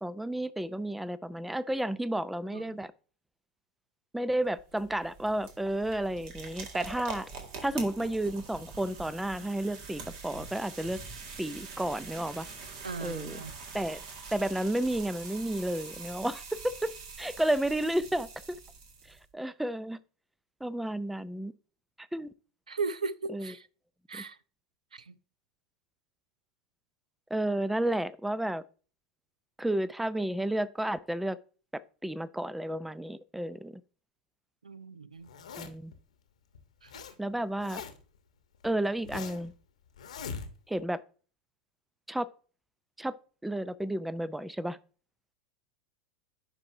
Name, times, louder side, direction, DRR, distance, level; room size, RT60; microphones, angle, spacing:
voice 1, 0.0-2.9 4.1-7.3 7.6-11.0 11.4-12.5 13.0-13.4 13.7-14.0 14.3-16.9 17.2-18.6 19.1-20.0 20.6-21.5 22.0-22.3 23.3-23.5 24.1-24.2 27.3-28.6 29.6-31.4 31.7-33.7 35.6-35.9 37.2-37.8 38.6-39.5 40.7-41.0 42.1-42.3 43.0-43.1 43.4-44.8, right 1 dB, 5° right, 0.4 m, -32 dB
sound 1, 4.4-19.2, right 4 dB, 55° right, 1.8 m, -45 dB
voice 2, 12.8-13.5 22.7-23.7 24.1-24.4 24.9-25.1 34.6-35.3 36.8-37.1, right 4 dB, 85° right, 0.4 m, -37 dB
Zipper (clothing), 35.2-35.9 36.5-37.1 37.4-38.2 38.6-39.5 40.0-40.8, left 6 dB, 75° left, 1.0 m, -42 dB
10.5 x 4.7 x 2.6 m
figure-of-eight pair, 90°, 4 cm